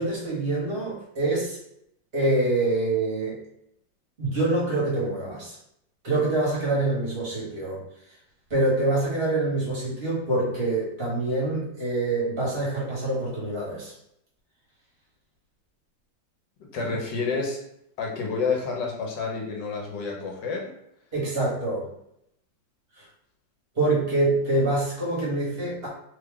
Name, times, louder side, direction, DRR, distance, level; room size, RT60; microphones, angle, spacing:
voice 1, 0.0-1.6 2.1-3.4 4.2-5.5 6.0-7.8 8.5-13.9 21.1-21.9 23.0-23.1 23.7-25.9, right 2 dB, 35° right, -6 dB, 1.3 m, -25 dB
voice 2, 16.7-17.6 18.0-20.7, left 4 dB, 75° left, -1 dB, 1.5 m, -29 dB
3.2 x 2.3 x 3.6 m, 0.76 s
omnidirectional pair, 2.0 m